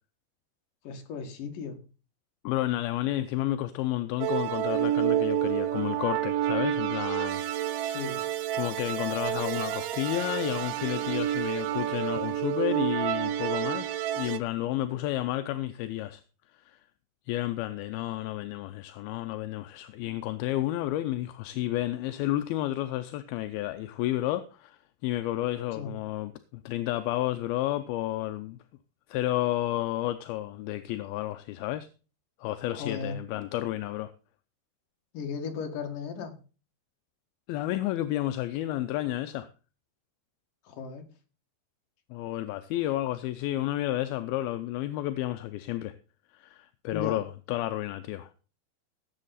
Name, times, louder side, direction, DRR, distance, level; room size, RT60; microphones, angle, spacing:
voice 1, 0.8-1.8 7.8-8.2 25.7-25.9 32.7-33.2 35.1-36.4 40.6-41.1 46.9-47.2, left 5 dB, 60° left, 3.2 m, -36 dB
voice 2, 2.4-7.4 8.5-16.2 16.7-16.8 17.3-26.3 26.7-28.6 29.1-31.9 32.4-34.1 37.5-39.5 42.1-45.9 46.3-48.3, left 14 dB, 80° left, 2.4 m, -31 dB
sound 1, 4.2-14.4, right 11 dB, 75° right, 2.0 m, -29 dB
17.5 x 7.4 x 4.1 m
omnidirectional pair, 4.7 m